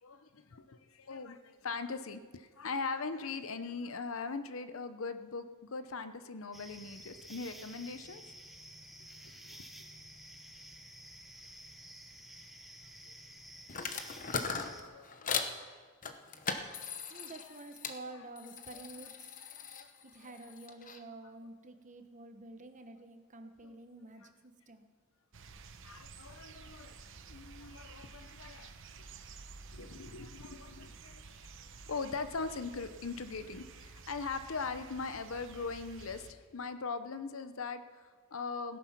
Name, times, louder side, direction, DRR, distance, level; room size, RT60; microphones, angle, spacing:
voice 1, 0.0-8.2 9.4-9.8 14.2-15.5 18.7-18.8 19.5-19.9 23.6-23.8 24.2-24.3 25.8-27.0 27.3-29.1 29.7-31.5 31.9-38.8, left 4 dB, 65° left, 11 dB, 0.8 m, -41 dB
sound 1, 6.5-14.8, right 1 dB, ahead, 1.0 m, -52 dB
sound 2, 13.7-15.5 16.0-18.0 18.4-21.0, left 5 dB, 35° left, 0.9 m, -39 dB
voice 2, 17.1-19.3 20.0-24.9, right 2 dB, 35° right, 7 dB, 1.1 m, -49 dB
sound 3, 25.3-36.3, right 4 dB, 60° right, 0.9 m, -52 dB
17.0 x 10.5 x 5.9 m, 1.5 s
head